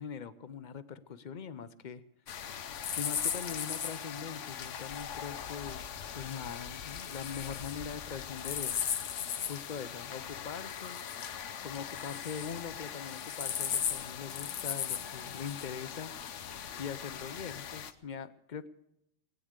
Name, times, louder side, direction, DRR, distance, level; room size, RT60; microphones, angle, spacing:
voice 1, 0.0-2.0 3.0-5.9 6.1-8.8 9.5-11.0 11.6-16.1 16.8-18.7, left 7 dB, 45° left, 13 dB, 0.7 m, -42 dB
sound 1, 2.3-17.9, left 8 dB, 75° left, 1.1 m, -38 dB
19.5 x 9.4 x 6.5 m, 0.81 s
omnidirectional pair, 1.3 m